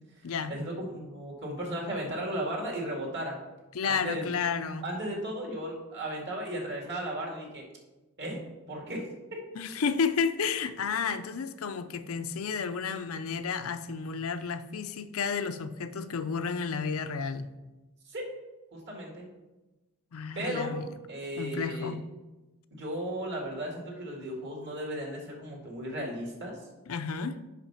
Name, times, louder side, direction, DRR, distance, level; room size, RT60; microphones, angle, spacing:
voice 1, 0.5-3.4 3.8-4.3 4.8-7.6 8.2-8.4 8.7-9.1 18.1-18.3 18.7-19.3 20.4-20.8 21.1-21.9 22.7-26.6, right 1 dB, 50° right, -1 dB, 2.1 m, -35 dB
voice 2, 3.7-4.9 9.5-17.5 20.1-20.8 21.4-22.0 26.9-27.4, left 5 dB, 65° left, 11 dB, 0.5 m, -31 dB
5.8 x 5.7 x 5.6 m, 1.1 s
head